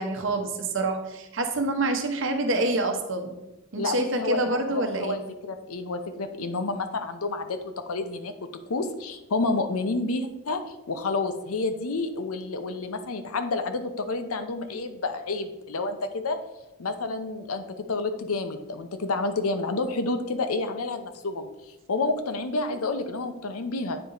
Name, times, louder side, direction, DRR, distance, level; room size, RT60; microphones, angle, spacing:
voice 1, 0.0-3.3 3.7-5.2, right 2 dB, 60° right, 4 dB, 0.9 m, -27 dB
voice 2, 3.8-8.3 8.7-10.6 10.9-16.4 16.8-21.5 21.9-24.0, left 3 dB, 80° left, 8 dB, 0.7 m, -29 dB
8.9 x 4.1 x 3.9 m, 0.97 s
head